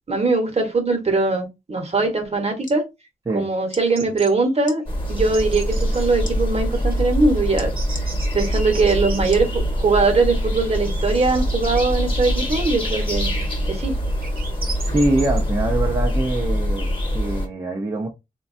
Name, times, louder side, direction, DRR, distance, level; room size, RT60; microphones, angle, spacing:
voice 1, 0.1-2.8 3.3-4.8 5.1-7.7 8.3-13.3 13.7-14.0, right 3 dB, 45° right, 0.9 m, -21 dB
Electric Touch Switch, 2.4-2.8 3.7-3.9 4.6-4.8 6.2-6.4 7.6-8.1 9.3-9.5 10.1-10.2, left 3 dB, 60° left, 0.7 m, -37 dB
sound 1, 3.8-4.3 4.7-4.8 5.2-6.1 6.7-9.3 9.9-11.0 11.3-15.4, right 4 dB, 90° right, 0.7 m, -37 dB
sound 2, 4.9-17.5, equal, 35° left, 1.0 m, -24 dB
voice 2, 14.7-18.1, right 2 dB, 25° right, 0.5 m, -24 dB
3.3 x 2.2 x 2.5 m
wide cardioid pair, 95°, 15 cm